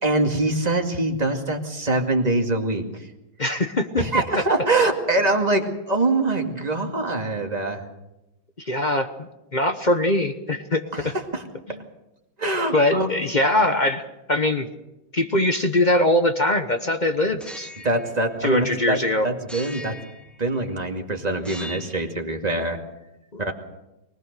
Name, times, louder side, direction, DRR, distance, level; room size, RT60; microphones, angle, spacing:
voice 1, 0.0-3.0 4.0-7.8 10.9-11.4 12.4-13.1 17.8-20.0 20.4-22.8 23.4-23.5, right 2 dB, 20° right, 3 dB, 2.2 m, -24 dB
voice 2, 3.4-4.1 4.3-4.4 8.6-11.1 11.7-11.8 12.7-14.7 15.1-17.7 18.4-19.3 23.3-23.5, left 1 dB, 35° left, 7 dB, 0.8 m, -22 dB
sound 1, 17.3-18.9 19.5-20.8 21.3-22.1, left 1 dB, ahead, 1.5 m, -41 dB
24.0 x 19.0 x 6.7 m, 0.95 s
omnidirectional pair, 2.2 m